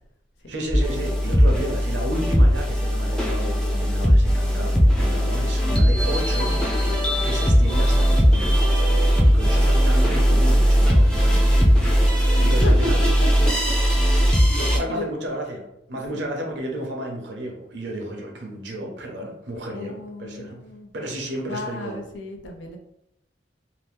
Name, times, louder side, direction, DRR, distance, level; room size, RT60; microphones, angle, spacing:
voice 1, 0.5-7.0 7.2-13.0 14.6-20.6 20.9-22.0, right 1 dB, 70° right, 1 dB, 0.7 m, -33 dB
sound 1, 0.7-14.8, equal, 5° left, 0.5 m, -18 dB
voice 2, 12.3-12.9 13.2-13.3 14.5-15.1 16.1-16.2 19.7-20.9 21.5-22.8, left 1 dB, 80° left, 2 dB, 0.6 m, -34 dB
2.8 x 2.0 x 3.3 m, 0.81 s
head